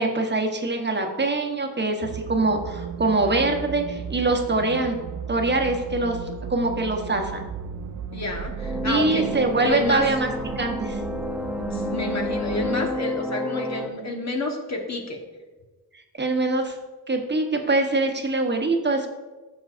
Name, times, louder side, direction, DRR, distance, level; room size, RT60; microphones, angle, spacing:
voice 1, 0.0-4.9 5.3-6.2 6.5-7.5 8.8-10.3 10.6-11.0 16.2-16.7 17.1-19.1, right 2 dB, 30° right, 3 dB, 1.0 m, -23 dB
sound 1, 2.0-12.9, right 8 dB, 55° right, 0.5 m, -35 dB
voice 2, 8.1-9.3 9.6-10.1 11.6-15.2, left 2 dB, 45° left, 2 dB, 1.3 m, -29 dB
sound 2, 8.6-13.9, left 2 dB, 5° right, 0.5 m, -30 dB
14.0 x 6.1 x 2.6 m, 1.2 s
wide cardioid pair, 135°, 38 cm